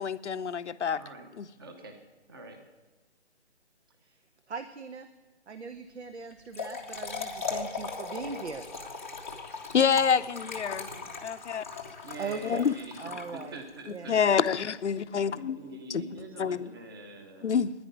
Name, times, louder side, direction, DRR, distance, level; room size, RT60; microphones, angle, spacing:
voice 1, 0.0-1.0 1.4-1.5 9.7-10.9 11.2-11.6 12.4-12.7 14.1-15.6 15.9-16.0 16.4-16.7 17.4-17.7, left 7 dB, 80° left, 0.7 m, -27 dB
voice 2, 0.9-1.3 1.6-2.0 2.3-2.6 10.8-11.0 12.0-14.2 14.9-17.5, right 2 dB, 20° right, 1.0 m, -45 dB
voice 3, 4.5-5.1 5.5-8.7 12.2-12.7 13.0-13.6 13.9-14.3, right 5 dB, 75° right, 1.0 m, -39 dB
Trickle dribble / Fill (with liquid), 6.3-13.8, left 5 dB, 10° left, 0.6 m, -39 dB
10.5 x 9.6 x 9.2 m
hypercardioid pair, 165°, 34 cm